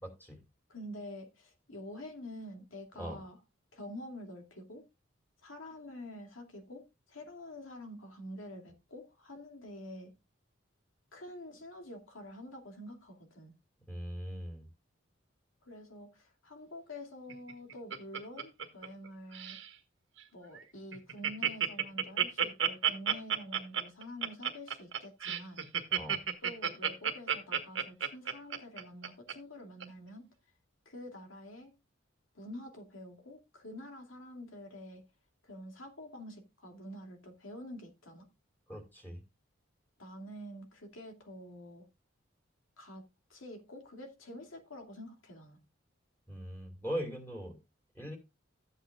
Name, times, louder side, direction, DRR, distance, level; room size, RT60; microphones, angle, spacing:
voice 1, 0.0-0.4 3.0-3.2 13.9-14.7 26.0-26.2 38.7-39.2 46.3-47.6 47.9-48.2, equal, 10° left, 2.5 m, -40 dB
voice 2, 0.7-3.4 3.7-4.8 5.4-10.1 11.1-13.5 15.6-19.6 20.3-25.6 26.4-30.2 30.9-31.7 32.3-35.0 35.4-38.3 40.0-41.8 42.8-43.0 43.3-45.6, left 1 dB, 90° left, 2.5 m, -47 dB
Laughter, 17.3-19.1 19.3-19.7 20.2-20.3 20.5-20.6 20.9-29.3 29.8-29.9, right 8 dB, 65° right, 1.4 m, -31 dB
13.5 x 8.2 x 2.4 m
head